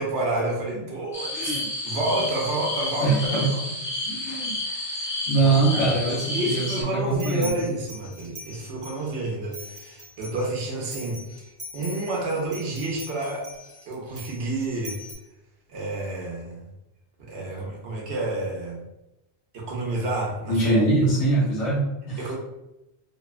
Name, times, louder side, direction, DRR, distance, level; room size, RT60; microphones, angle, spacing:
voice 1, 0.0-3.7 4.6-11.4 11.7-13.5 13.9-15.0 15.7-16.7 17.2-18.8 19.5-20.9 22.2-22.4, right 2 dB, 75° right, -1 dB, 0.9 m, -30 dB
sound 1, 1.1-6.8, left 1 dB, 30° left, 0.5 m, -31 dB
voice 2, 1.3-1.7 3.0-3.5 4.0-4.6 5.3-7.5 20.5-22.4, right 2 dB, 85° left, -5 dB, 0.9 m, -23 dB
sound 2, 7.1-9.1 9.5-15.1, left 1 dB, 30° right, 0.6 m, -42 dB
2.8 x 2.1 x 2.3 m, 0.93 s
omnidirectional pair, 1.1 m